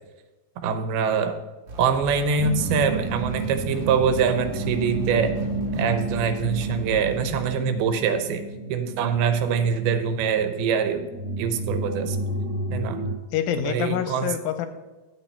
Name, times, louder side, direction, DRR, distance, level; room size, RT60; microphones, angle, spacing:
voice 1, 0.6-1.4 1.8-5.4 5.8-8.4 8.7-11.1 11.4-12.2 12.7-13.0 13.6-14.3, right 6 dB, 80° right, 9 dB, 2.6 m, -24 dB
sound 1, 1.7-7.4, right 2 dB, 50° right, 1.4 m, -38 dB
sound 2, 2.4-13.1, right 2 dB, 35° right, 1.0 m, -31 dB
voice 2, 12.7-13.0 13.3-14.7, left 10 dB, 80° left, 9 dB, 2.2 m, -27 dB
11.0 x 7.2 x 4.4 m, 1.1 s
omnidirectional pair, 4.6 m